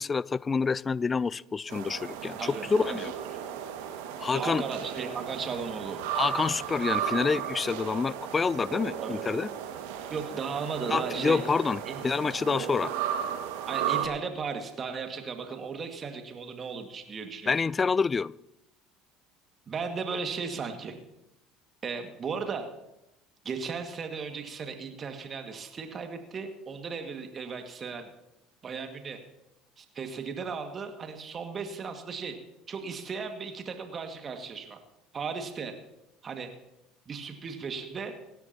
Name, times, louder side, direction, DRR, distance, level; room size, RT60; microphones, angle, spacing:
voice 1, 0.0-3.1 4.2-4.6 6.1-9.5 10.9-12.9 17.5-18.3, left 5 dB, 25° left, 22 dB, 0.4 m, -27 dB
sound 1, 1.7-14.1, right 9 dB, 65° right, 1.9 m, -34 dB
voice 2, 2.4-3.0 4.3-6.0 9.0-9.2 10.1-11.4 11.9-12.0 13.7-17.6 19.7-20.9 21.8-22.6 23.4-28.1 28.6-29.2 29.8-32.4 32.7-34.8 35.1-35.7 36.2-36.5 37.1-38.1, right 5 dB, 35° right, 5 dB, 2.0 m, -36 dB
25.5 x 12.5 x 2.9 m, 0.89 s
figure-of-eight pair, 65°, 0 cm